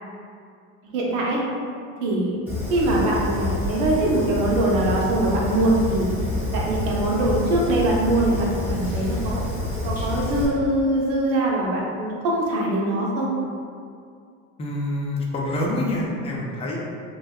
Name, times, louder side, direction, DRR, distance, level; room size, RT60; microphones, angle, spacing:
voice 1, 0.9-1.4 2.0-2.4 2.7-6.1 6.5-9.4 9.8-13.3, right 1 dB, 80° right, -3 dB, 0.7 m, -22 dB
Fire, 2.5-10.5, left 1 dB, 5° right, 1.0 m, -28 dB
voice 2, 14.6-16.8, left 1 dB, 15° left, -3 dB, 0.3 m, -26 dB
2.6 x 2.2 x 2.3 m, 2.3 s
supercardioid pair, 95°, 39 cm